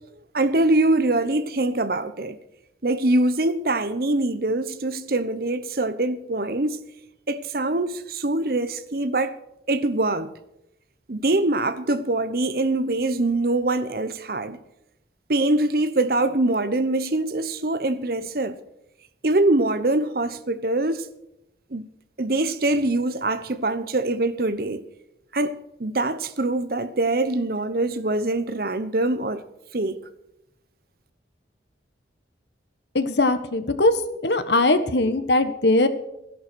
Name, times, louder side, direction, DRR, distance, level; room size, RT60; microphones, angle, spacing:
voice 1, 0.3-2.4 2.8-6.8 7.3-9.4 9.7-10.3 11.1-14.6 15.3-18.6 19.2-21.1 21.7-21.9 22.2-24.8 25.3-29.4 29.7-30.0, right 2 dB, 55° right, 0.9 m, -23 dB
voice 2, 32.9-33.9 34.2-35.9, left 2 dB, 70° left, 1.2 m, -20 dB
13.5 x 11.0 x 6.2 m
head